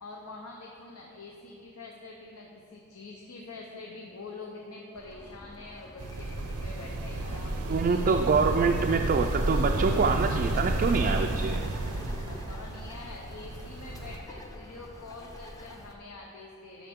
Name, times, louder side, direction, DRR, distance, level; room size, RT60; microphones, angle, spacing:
voice 1, 0.0-8.0 8.4-8.6 12.3-16.9, left 3 dB, 85° left, -1 dB, 0.8 m, -45 dB
Bird, 4.9-16.0, left 1 dB, 15° left, 0.5 m, -47 dB
sound 1, 6.0-14.2, right 2 dB, 80° right, 0.7 m, -31 dB
voice 2, 7.7-11.6, right 4 dB, 40° right, 3 dB, 0.3 m, -25 dB
11.0 x 6.3 x 3.6 m, 2.5 s
head